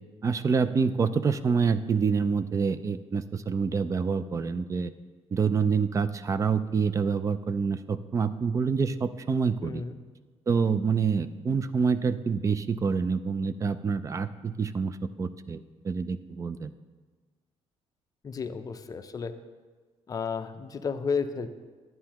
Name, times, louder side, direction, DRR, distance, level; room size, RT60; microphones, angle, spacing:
voice 1, 0.2-4.9 5.3-9.8 10.5-16.7, right 5 dB, 30° right, 13 dB, 0.3 m, -27 dB
voice 2, 9.6-10.0 18.2-19.3 20.1-21.5, left 5 dB, 30° left, 8 dB, 0.5 m, -32 dB
11.5 x 9.4 x 2.9 m, 1.4 s
cardioid pair, 125°, 11 cm